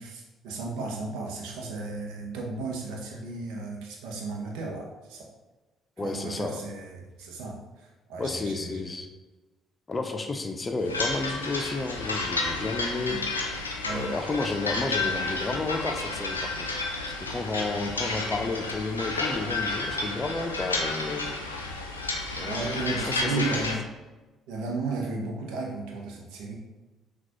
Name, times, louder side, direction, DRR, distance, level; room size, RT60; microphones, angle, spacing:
voice 1, 0.0-5.3 6.0-8.9 13.1-13.2 13.8-14.1 22.4-23.8 24.5-26.6, right 3 dB, 65° right, 0 dB, 0.8 m, -34 dB
voice 2, 6.0-6.6 8.2-9.1 9.9-13.2 13.9-16.7 17.1-21.3 22.4-23.5, left 3 dB, 25° left, 5 dB, 0.5 m, -32 dB
sound 1, 10.8-23.8, left 3 dB, 90° left, 0.4 m, -31 dB
5.9 x 2.4 x 2.9 m, 1.2 s
figure-of-eight pair, 50°, 0 cm